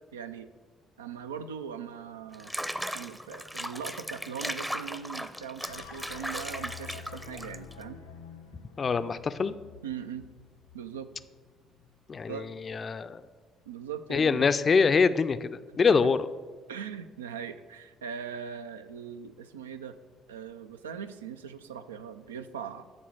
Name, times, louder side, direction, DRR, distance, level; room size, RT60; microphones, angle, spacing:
voice 1, 0.1-0.5 1.0-2.5 2.9-8.0 9.8-10.3 10.7-11.1 12.3-12.5 13.7-14.5 15.9-16.0 16.7-20.0 20.3-22.8, right 7 dB, 85° right, 10 dB, 0.4 m, -40 dB
Water / Bathtub (filling or washing), 2.3-7.8, equal, 5° right, 0.6 m, -37 dB
sound 1, 5.6-12.0, left 7 dB, 85° left, 0.5 m, -48 dB
voice 2, 8.8-9.5 12.1-13.2 14.1-16.3, left 5 dB, 40° left, 12 dB, 0.4 m, -25 dB
9.0 x 4.2 x 7.1 m, 1.4 s
hypercardioid pair, 50°, 0 cm